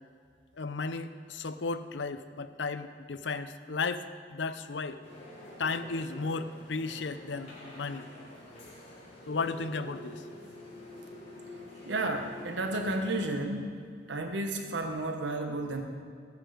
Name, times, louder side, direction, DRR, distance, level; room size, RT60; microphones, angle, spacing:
voice 1, 0.6-4.1 4.3-5.0 5.6-8.1 9.3-10.2, left 4 dB, 75° left, 12 dB, 0.6 m, -34 dB
sound 1, 5.0-13.4, left 1 dB, 35° left, 3.7 m, -47 dB
voice 2, 11.9-13.8 14.1-15.8, right 2 dB, 80° right, 4 dB, 1.3 m, -32 dB
14.5 x 9.6 x 5.1 m, 2.1 s
head